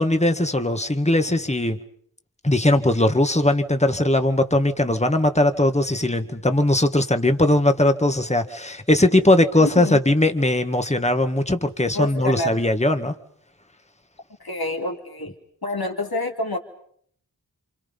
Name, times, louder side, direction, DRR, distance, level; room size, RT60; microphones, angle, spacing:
voice 1, 0.0-1.8 2.4-13.1, left 1 dB, 15° left, 7 dB, 2.0 m, -19 dB
voice 2, 9.6-10.0 11.9-12.6 14.4-15.3 15.6-16.6, left 2 dB, 75° left, 2 dB, 3.1 m, -27 dB
30.0 x 27.5 x 5.6 m, 0.63 s
wide cardioid pair, 50°, 37 cm